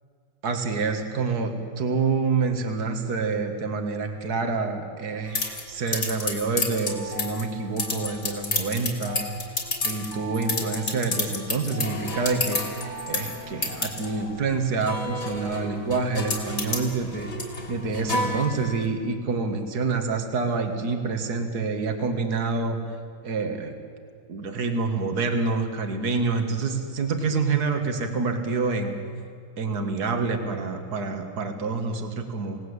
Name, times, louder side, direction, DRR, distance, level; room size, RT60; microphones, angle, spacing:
voice 1, 0.4-9.3 9.8-17.3 17.7-22.8 23.2-23.8 24.3-29.0 29.6-32.6, right 4 dB, 55° right, 5 dB, 2.4 m, -27 dB
sound 1, 5.4-18.9, left 2 dB, 55° left, 3.8 m, -31 dB
28.0 x 18.5 x 8.2 m, 2.3 s
omnidirectional pair, 2.1 m